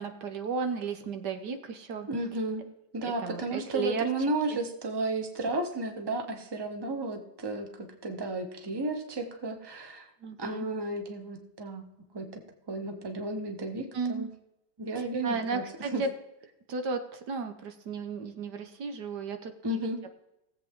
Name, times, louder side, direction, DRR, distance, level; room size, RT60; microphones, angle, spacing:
voice 1, 0.0-2.1 3.1-4.1 4.5-4.6 10.2-10.7 13.9-14.3 14.9-16.1 16.7-20.1, right 4 dB, 70° right, 7 dB, 1.6 m, -34 dB
voice 2, 2.1-2.6 2.9-10.1 10.4-11.8 12.1-12.4 12.7-14.3 14.8-16.0 19.6-20.0, right 2 dB, 15° right, 5 dB, 1.1 m, -33 dB
17.5 x 7.9 x 3.7 m, 0.89 s
omnidirectional pair, 1.9 m